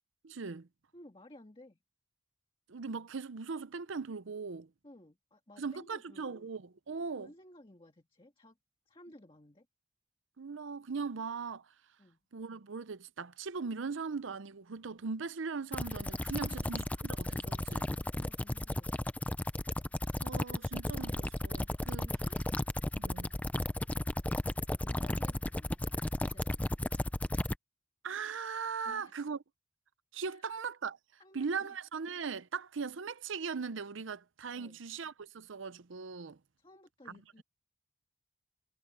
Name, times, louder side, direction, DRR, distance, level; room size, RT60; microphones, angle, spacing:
voice 1, 0.2-0.7 2.7-4.7 5.6-7.3 10.4-11.7 12.3-17.9 20.2-22.1 22.9-23.3 28.0-29.4 30.1-31.0 31.3-36.4, right 5 dB, 70° right, 0.7 m, -39 dB
voice 2, 0.9-1.8 4.8-6.6 7.2-8.6 8.8-9.7 12.0-12.2 16.3-16.8 17.9-19.0 19.4-19.5 22.0-22.4 24.8-26.6 28.8-29.3 30.3-30.4 31.2-31.8 34.5-34.8 36.6-37.4, left 1 dB, 25° left, 1.6 m, -57 dB
sound 1, 15.7-27.6, left 1 dB, 5° left, 0.4 m, -34 dB
head